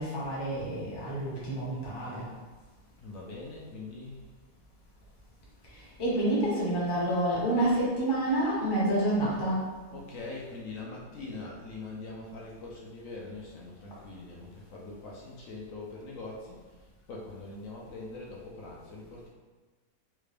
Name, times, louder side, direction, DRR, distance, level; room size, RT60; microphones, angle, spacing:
voice 1, 0.0-2.3 5.7-9.7, right 1 dB, 25° left, -6 dB, 0.6 m, -28 dB
voice 2, 3.0-4.2 9.9-19.3, left 3 dB, 70° left, -3 dB, 1.0 m, -43 dB
3.6 x 2.4 x 3.2 m, 1.3 s
omnidirectional pair, 1.5 m